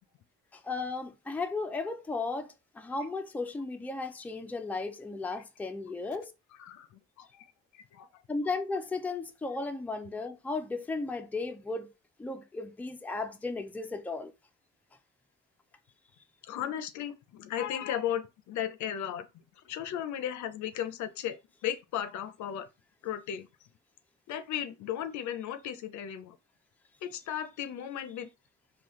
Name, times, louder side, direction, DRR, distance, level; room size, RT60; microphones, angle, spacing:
voice 1, 0.6-6.3 8.3-11.9 12.2-14.3, left 3 dB, 5° left, 0.4 m, -35 dB
voice 2, 7.7-8.1 16.4-19.3 19.7-21.4 21.6-22.7 23.0-23.5 24.3-26.4 27.0-28.3, left 10 dB, 75° left, 0.5 m, -35 dB
3.8 x 2.3 x 3.0 m
cardioid pair, 90°, 30 cm